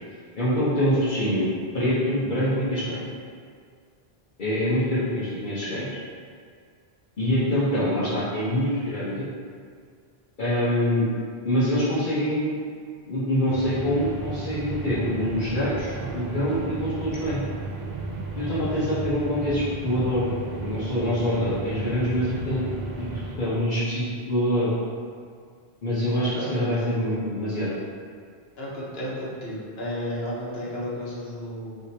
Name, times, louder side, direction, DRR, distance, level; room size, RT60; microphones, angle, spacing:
voice 1, 0.4-3.1 4.4-5.9 7.2-9.2 10.4-11.1 11.4-12.5 13.1-17.4 18.4-22.7 23.0-23.1 23.4-24.7 25.8-27.7, equal, 50° left, -10 dB, 1.1 m, -25 dB
sound 1, 13.5-23.4, right 3 dB, 55° right, 0.6 m, -34 dB
voice 2, 28.6-31.8, equal, 75° left, -6 dB, 1.2 m, -33 dB
5.0 x 2.9 x 2.8 m, 2.1 s
omnidirectional pair, 1.0 m